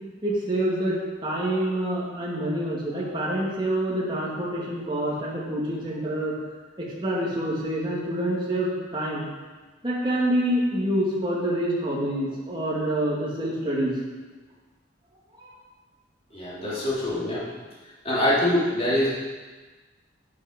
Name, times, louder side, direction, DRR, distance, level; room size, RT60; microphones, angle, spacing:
voice 1, 0.2-6.3 6.8-9.3 9.8-13.9 15.4-15.5 16.6-16.8, right 1 dB, 25° right, -6 dB, 2.3 m, -27 dB
voice 2, 16.3-17.4 18.0-19.1, left 1 dB, 30° left, -8 dB, 3.0 m, -24 dB
9.3 x 8.1 x 5.2 m, 1.3 s
head